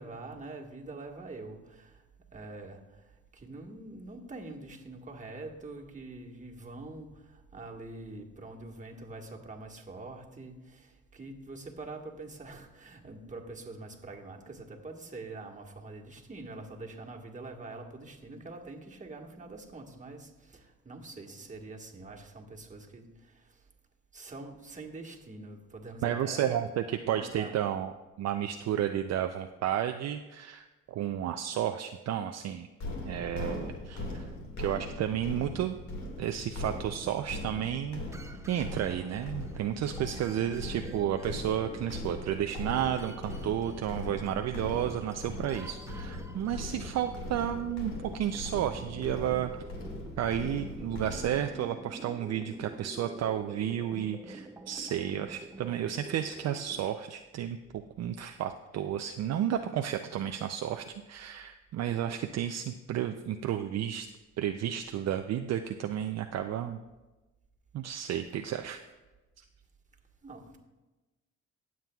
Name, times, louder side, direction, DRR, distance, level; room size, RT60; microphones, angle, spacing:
voice 1, 0.0-2.0 2.3-23.7 24.1-26.6 27.0-27.5 70.2-70.6, right 2 dB, 25° right, 1 dB, 1.5 m, -45 dB
voice 2, 26.0-27.9 28.2-32.7 33.0-34.3 34.6-35.8 36.2-38.0 38.5-49.6 50.2-64.1 64.4-66.8 67.7-68.8 69.4-69.5, right 10 dB, 60° right, 6 dB, 0.5 m, -32 dB
sound 1, 32.8-51.4, left 1 dB, 70° left, 2.0 m, -40 dB
sound 2, 38.1-56.9, right 2 dB, 10° right, 0.5 m, -48 dB
19.0 x 7.4 x 2.3 m, 1.1 s
cardioid pair, 90°, 30 cm